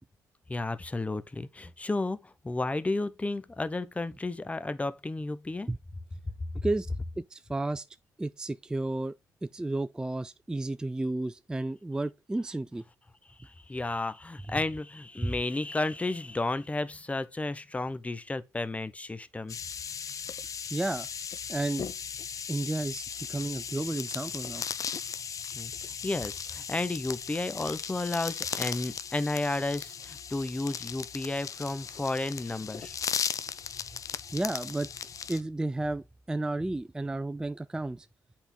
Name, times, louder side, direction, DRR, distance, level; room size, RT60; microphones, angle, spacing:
voice 1, 0.5-5.7 6.5-6.6 13.4-19.6 25.5-25.7 26.0-33.0, left 2 dB, 20° left, 0.7 m, -32 dB
voice 2, 7.2-7.9 8.2-9.1 9.4-12.8 15.2-15.3 20.7-21.1 21.5-21.9 22.5-24.6 34.3-34.9 35.3-38.1, right 2 dB, 10° right, 0.3 m, -32 dB
sound 1, 19.5-35.4, left 7 dB, 50° left, 0.5 m, -37 dB
7.9 x 4.3 x 3.8 m
supercardioid pair, 60°, 7 cm